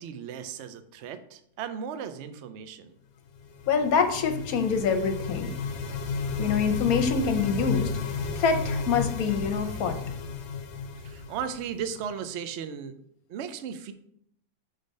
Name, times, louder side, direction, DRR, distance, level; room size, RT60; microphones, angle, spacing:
voice 1, 0.0-2.9 11.0-12.9 13.3-13.9, right 7 dB, 70° right, 9 dB, 0.6 m, -36 dB
sound 1, 3.4-12.1, left 5 dB, 85° left, 0.6 m, -33 dB
voice 2, 3.7-5.5 6.4-7.9 8.4-10.0, left 5 dB, 65° left, 7 dB, 1.1 m, -25 dB
6.3 x 3.3 x 5.2 m, 0.67 s
omnidirectional pair, 1.9 m